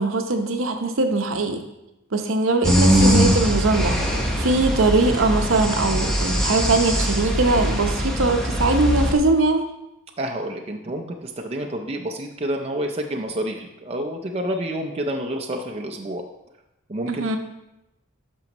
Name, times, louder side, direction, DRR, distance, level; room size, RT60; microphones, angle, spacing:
voice 1, 0.0-1.6 2.1-9.6 17.1-17.4, right 2 dB, 65° right, 5 dB, 0.8 m, -21 dB
Sleeping with mild snoring, 2.6-9.1, equal, 5° left, 1.0 m, -21 dB
voice 2, 10.2-16.2 16.9-17.4, right 1 dB, 30° right, 2 dB, 0.5 m, -29 dB
12.0 x 5.2 x 3.0 m, 0.90 s
head